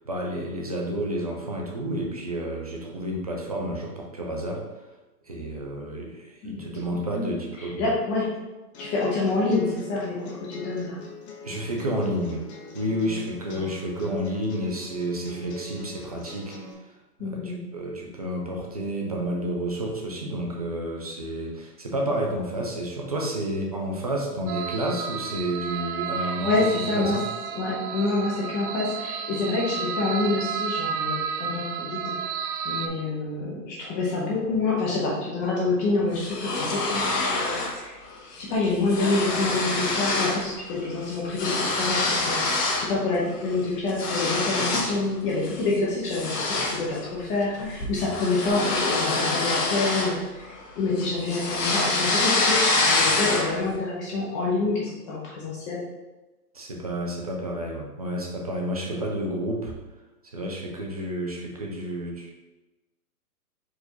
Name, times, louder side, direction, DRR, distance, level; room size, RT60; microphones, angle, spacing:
voice 1, 0.1-4.6 5.3-7.9 11.4-12.4 12.7-16.5 17.2-26.5 26.8-27.2 56.5-59.7 60.3-62.3, right 1 dB, 30° right, 0 dB, 0.3 m, -30 dB
voice 2, 7.1-8.3 8.8-11.0 13.1-13.2 13.5-13.6 17.2-17.6 26.2-27.2 27.5-32.1 32.6-37.9 38.4-50.2 50.8-55.8 58.9-59.0, left 3 dB, 15° left, -5 dB, 0.6 m, -27 dB
sound 1, 8.7-16.7, left 2 dB, 45° left, 0.9 m, -42 dB
sound 2, 24.5-32.9, right 6 dB, 70° right, 0.6 m, -32 dB
sound 3, 36.1-37.8 38.1-38.4 38.6-40.5 40.7-42.9 43.3-45.0 45.4-45.7 46.1-50.6 51.0-53.7, left 2 dB, 75° left, 1.5 m, -26 dB
4.6 x 2.6 x 4.4 m, 1.1 s
hypercardioid pair, 145°, 47 cm